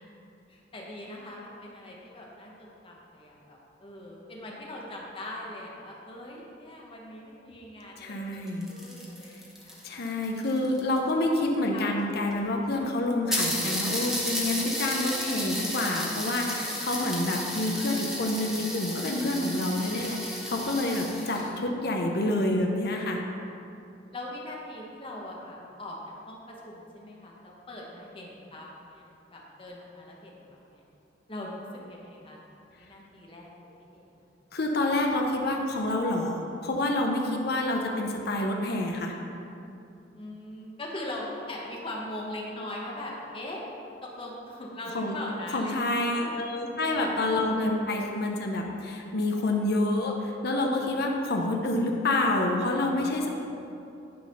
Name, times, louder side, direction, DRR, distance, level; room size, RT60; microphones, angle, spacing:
voice 1, 0.0-10.0 10.5-10.7 11.7-11.9 21.3-21.5 24.1-26.0 26.2-29.0 29.3-30.4 30.7-30.8 31.3-32.4 32.8-34.1 40.1-43.6 44.0-46.4 46.9-47.9, left 1 dB, 30° left, -2 dB, 1.2 m, -41 dB
voice 2, 8.0-8.7 9.8-23.2 34.5-39.1 44.9-45.2 45.5-53.3, left 2 dB, 60° left, 1 dB, 0.8 m, -28 dB
sound 1, 8.3-11.1 12.0-12.1 12.3-12.4 12.7-12.8 13.3-21.5, equal, ahead, 1.1 m, -33 dB
10.5 x 4.1 x 5.5 m, 2.7 s
head